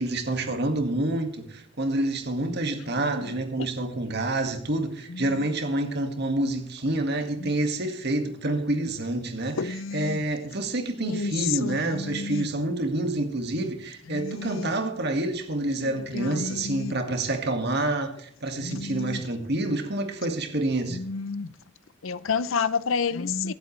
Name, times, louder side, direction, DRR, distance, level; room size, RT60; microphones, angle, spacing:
voice 1, 0.0-21.0, right 2 dB, 55° right, 2.0 m, -28 dB
voice 2, 9.6-10.2 11.0-11.3 11.6-12.5 14.1-14.7 15.8-17.0 18.6-19.2 20.9-21.5 22.0-23.5, left 5 dB, 75° left, 0.6 m, -30 dB
24.0 x 8.1 x 3.3 m
head